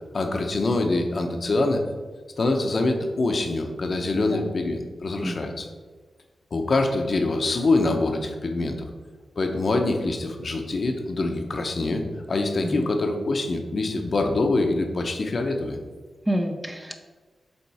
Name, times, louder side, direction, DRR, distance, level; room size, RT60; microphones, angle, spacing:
voice 1, 0.1-1.8 2.4-5.7 6.5-8.9 9.4-15.8, left 2 dB, 45° left, 4 dB, 0.8 m, -25 dB
voice 2, 5.2-5.5 12.6-12.8 16.3-16.9, equal, 15° right, 5 dB, 0.5 m, -28 dB
7.0 x 3.7 x 4.8 m, 1.4 s
wide cardioid pair, 115°, 0 cm